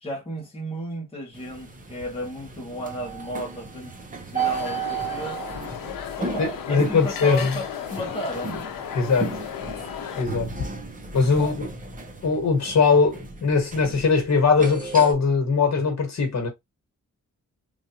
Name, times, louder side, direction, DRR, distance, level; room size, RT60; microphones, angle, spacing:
voice 1, 0.0-3.9 4.3-5.4 6.2-8.5 11.4-11.6, equal, 15° left, 1.1 m, -34 dB
sound 1, 1.3-15.1, right 5 dB, 25° right, 0.8 m, -35 dB
sound 2, 4.4-10.3, left 8 dB, 85° left, 0.6 m, -35 dB
voice 2, 6.4-7.5 8.9-9.3 10.2-10.5 11.1-11.7 12.2-16.5, left 4 dB, 55° left, 1.4 m, -21 dB
3.2 x 2.6 x 2.8 m
wide cardioid pair, 115°, 33 cm